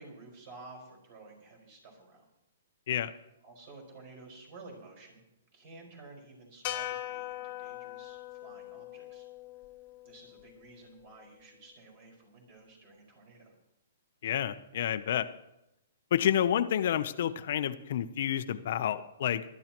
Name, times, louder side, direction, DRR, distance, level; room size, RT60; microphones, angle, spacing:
voice 1, 0.0-2.3 3.4-5.2 5.5-9.3 10.0-13.5, right 3 dB, 40° right, 0 dB, 5.1 m, -52 dB
sound 1, 6.6-11.0, left 14 dB, 40° left, 1.3 m, -41 dB
voice 2, 14.2-15.3 16.1-19.4, left 10 dB, 60° left, 11 dB, 0.7 m, -29 dB
20.5 x 12.5 x 3.0 m, 0.88 s
hypercardioid pair, 150°, 0 cm